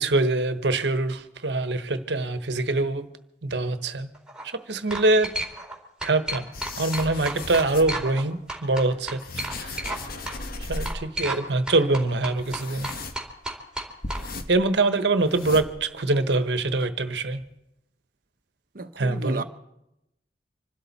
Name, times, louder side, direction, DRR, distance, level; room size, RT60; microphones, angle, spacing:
voice 1, 0.0-3.1 3.4-4.1 4.4-5.3 6.0-6.5 6.7-9.8 10.7-12.9 14.5-17.4 19.0-19.4, right 2 dB, 75° right, 1.2 m, -24 dB
sound 1, 4.1-4.4 4.9-5.8 6.0-8.2 8.5-10.0 10.3-10.4 10.9-11.4 11.7-14.2, right 1 dB, 5° right, 2.5 m, -32 dB
sound 2, 6.5-8.1 8.8-11.2 11.4-11.5 11.7-11.9 12.4-13.5 14.0-14.8 15.1-16.0 16.3-16.4 17.1-17.2 17.4-17.5, left 2 dB, 55° left, 1.2 m, -36 dB
voice 2, 18.7-19.4, right 3 dB, 55° right, 1.0 m, -33 dB
26.5 x 12.5 x 4.2 m
head